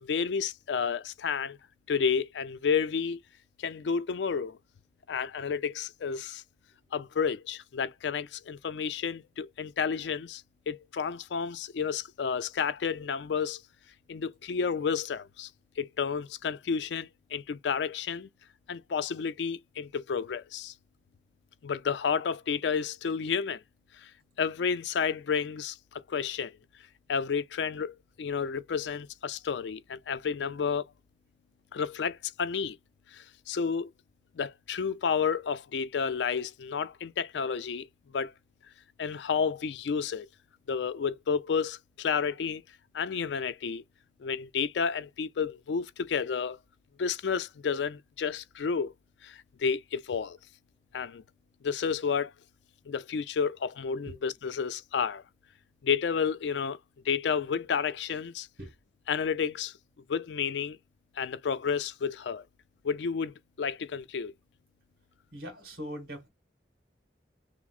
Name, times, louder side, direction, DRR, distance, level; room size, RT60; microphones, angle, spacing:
voice 1, 0.0-1.6 1.9-3.2 3.6-4.6 5.1-6.4 6.9-13.6 14.1-15.5 15.8-18.3 18.7-20.7 21.6-23.6 24.0-24.1 24.4-26.5 27.1-30.9 31.7-32.8 33.1-33.9 34.4-37.9 38.1-38.3 39.0-40.3 40.7-42.6 42.9-43.8 44.2-46.6 47.0-48.9 49.2-50.4 50.9-51.2 51.6-52.3 52.9-55.2 55.8-56.8 57.1-58.5 59.1-59.7 60.1-60.8 61.2-62.4 62.8-64.3, left 6 dB, 75° left, 0.4 m, -31 dB
voice 2, 65.3-66.3, equal, 60° right, 2.2 m, -41 dB
5.8 x 2.0 x 2.4 m
head